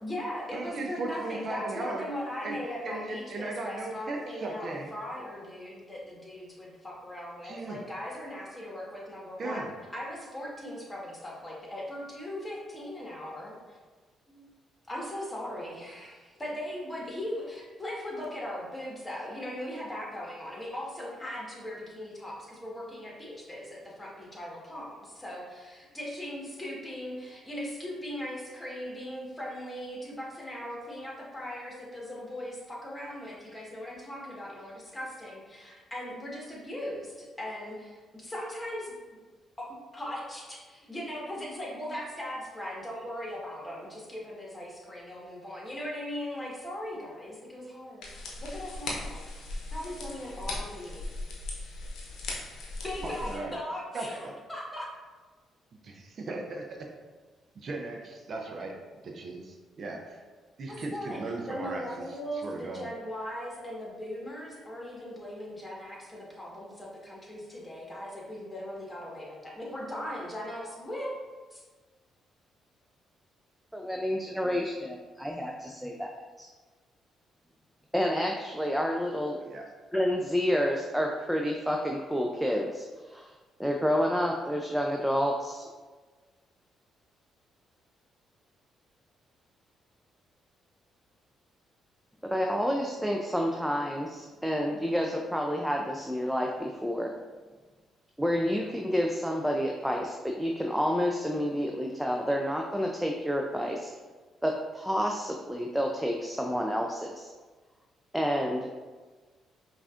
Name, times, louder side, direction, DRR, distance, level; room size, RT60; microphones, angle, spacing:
voice 1, 0.0-9.7 9.9-13.8 14.3-14.5 14.9-25.5 25.9-38.9 39.6-48.1 48.4-49.3 49.7-51.1 52.8-54.9 60.7-61.2 61.5-71.1 71.5-71.6, left 1 dB, 20° left, -3 dB, 1.4 m, -39 dB
voice 2, 0.5-2.1 2.4-2.6 2.8-4.9 7.4-7.8 9.4-9.7 53.0-53.6 53.9-54.3 56.0-56.8 57.5-58.7 59.0-60.2 60.6-62.1 62.3-62.9 79.4-79.6, right 2 dB, 55° right, 1 dB, 0.6 m, -37 dB
sound 1, 48.0-53.4, left 2 dB, 70° left, 0.7 m, -38 dB
voice 3, 73.7-76.1 76.4-76.5 77.9-79.4 79.9-83.3 83.6-85.6 92.2-97.1 98.2-103.9 104.4-107.3 108.1-108.7, equal, 5° right, 1 dB, 0.4 m, -29 dB
5.3 x 2.5 x 2.4 m, 1.3 s
hypercardioid pair, 50°, 0 cm